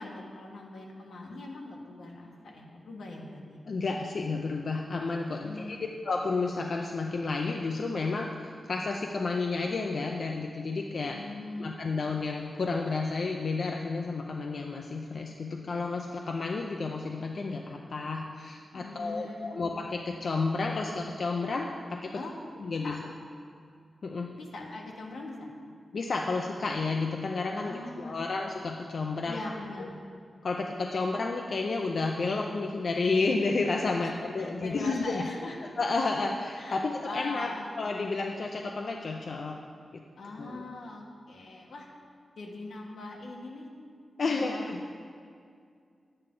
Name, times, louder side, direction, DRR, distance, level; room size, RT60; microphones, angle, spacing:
voice 1, 0.0-3.6 5.4-5.8 11.0-11.9 18.7-19.6 22.1-22.3 22.8-23.0 24.4-25.5 27.6-28.2 29.3-30.0 34.0-34.1 34.4-35.6 36.6-37.7 40.2-41.9 42.4-43.7 44.2-44.7, left 2 dB, 85° left, -1 dB, 1.5 m, -41 dB
voice 2, 3.7-11.2 11.6-22.2 22.6-23.0 24.0-24.3 25.9-29.4 29.8-29.9 30.4-35.2 35.8-37.5 37.8-39.6 39.9-40.0 40.4-40.6 44.2-44.8, left 3 dB, 55° left, 1 dB, 0.5 m, -31 dB
11.0 x 8.7 x 3.8 m, 2.2 s
wide cardioid pair, 160°, 0 cm